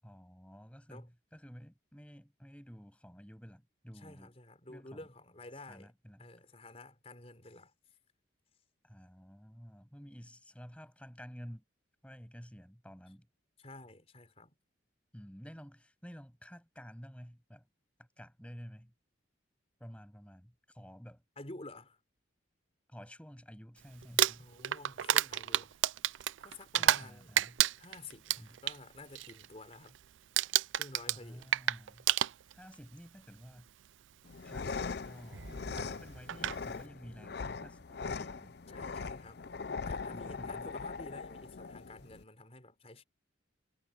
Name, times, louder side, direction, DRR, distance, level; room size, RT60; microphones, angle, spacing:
voice 1, 0.0-4.3 4.7-5.0 5.5-6.3 8.8-11.6 12.0-13.3 15.1-17.7 18.0-18.9 19.8-21.2 22.9-24.5 26.8-27.6 28.4-28.6 31.1-32.1 32.5-33.7 34.4-38.6 40.1-40.7, equal, 5° left, 7.9 m, -51 dB
voice 2, 3.9-5.9 6.2-7.7 13.6-14.6 21.4-22.0 24.4-25.7 26.4-27.4 27.8-30.0 30.8-31.5 38.7-39.5 39.8-43.0, left 2 dB, 30° left, 4.5 m, -51 dB
Crumpling crinkling, 24.0-27.1 27.4-28.8 29.1-29.5 29.7-30.0 30.4-32.7 33.7-33.8 35.8-35.9 36.3-36.6, right 12 dB, 70° right, 0.4 m, -30 dB
sound 1, 34.2-42.2, left 4 dB, 55° left, 0.5 m, -41 dB
sound 2, 35.3-38.5 38.8-39.0, right 2 dB, 55° right, 1.3 m, -53 dB
head